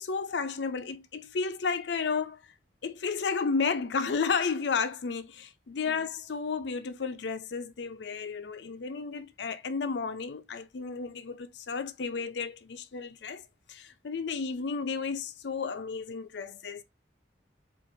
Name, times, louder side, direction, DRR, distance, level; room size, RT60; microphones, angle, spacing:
voice 1, 0.0-2.4 2.8-13.4 13.7-16.8, left 5 dB, 75° left, 0.5 m, -32 dB
4.4 x 2.5 x 2.6 m
head